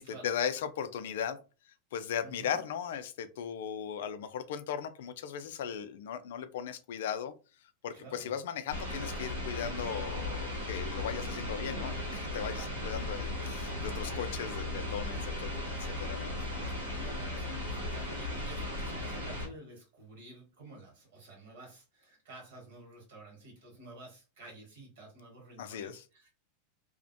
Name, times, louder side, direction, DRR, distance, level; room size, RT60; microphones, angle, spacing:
voice 1, 0.2-1.4 1.9-7.3 7.8-11.9 12.3-15.5 15.8-16.3 25.6-26.0, left 8 dB, 70° left, 10 dB, 0.3 m, -37 dB
voice 2, 2.2-2.6 7.9-8.3 11.7-12.0 12.5-13.3 16.2-26.3, right 2 dB, 70° right, -1 dB, 1.3 m, -51 dB
sound 1, 8.7-19.5, left 1 dB, 90° right, 1.0 m, -36 dB
2.4 x 2.1 x 2.5 m, 0.33 s
hypercardioid pair, 95°, 0 cm